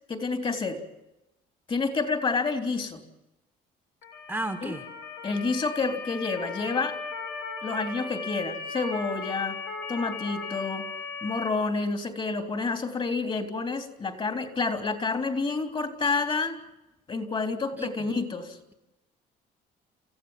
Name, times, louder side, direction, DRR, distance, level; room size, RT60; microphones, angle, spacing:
voice 1, 0.1-0.8 1.7-3.0 4.6-4.7 5.2-7.0 7.6-9.6 9.9-10.9 11.2-16.6 17.1-18.6, left 4 dB, 30° left, 7 dB, 3.6 m, -29 dB
Motor vehicle (road) / Siren, 4.0-11.5, left 4 dB, 90° left, 6.3 m, -37 dB
voice 2, 4.3-4.8 17.8-17.9, right 1 dB, 10° right, 7 dB, 1.8 m, -32 dB
29.5 x 15.0 x 7.4 m, 0.94 s
cardioid pair, 110°, 17 cm